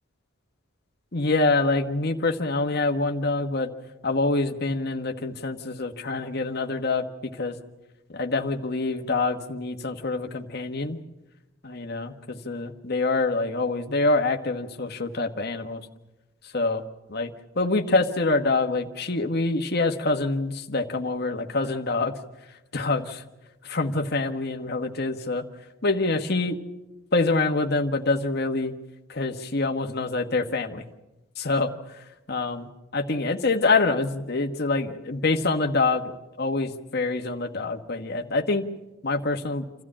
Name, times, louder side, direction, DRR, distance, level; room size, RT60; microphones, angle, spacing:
voice 1, 1.1-3.7 4.0-7.6 8.1-11.0 11.6-15.8 16.4-16.8 17.1-22.1 22.7-23.2 23.7-25.4 25.8-26.6 27.1-28.7 29.1-30.8 31.4-36.1 36.4-38.7 39.0-39.6, left 3 dB, 50° left, 6 dB, 1.3 m, -26 dB
28.0 x 14.0 x 8.7 m, 1.0 s
head